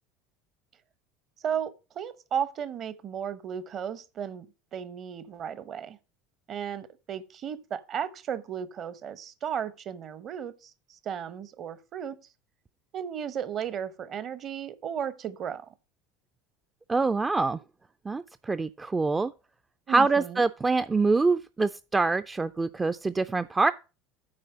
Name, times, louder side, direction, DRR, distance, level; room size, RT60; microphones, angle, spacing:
voice 1, 1.4-4.5 4.7-6.0 6.5-12.2 12.9-15.7 19.9-20.4, right 8 dB, 45° right, 0.9 m, -34 dB
voice 2, 16.9-17.6 18.1-19.3 19.9-23.7, right 3 dB, 20° right, 0.4 m, -25 dB
8.8 x 4.4 x 6.6 m
hypercardioid pair, 75°, 0 cm